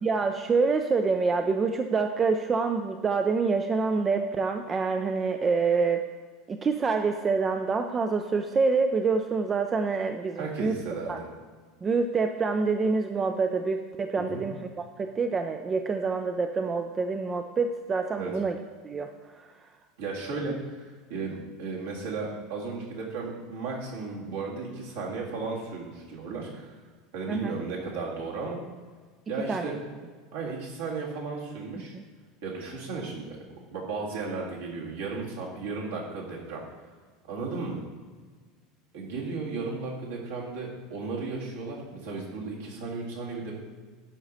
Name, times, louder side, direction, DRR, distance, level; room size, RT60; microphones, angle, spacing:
voice 1, 0.0-6.1 6.5-10.8 11.1-11.2 11.8-14.7 15.0-18.6 18.8-19.1 19.4-19.5 27.3-27.6 29.5-29.7 31.9-32.0, right 4 dB, 25° right, 6 dB, 0.5 m, -26 dB
voice 2, 10.4-11.2 14.2-14.4 18.1-18.3 20.0-26.8 27.1-28.6 29.3-29.7 30.3-32.0 32.4-33.4 33.7-36.6 37.3-37.8 38.9-43.5, right 4 dB, 65° right, -3 dB, 2.0 m, -35 dB
11.0 x 4.9 x 4.1 m, 1.5 s
figure-of-eight pair, 75°, 0 cm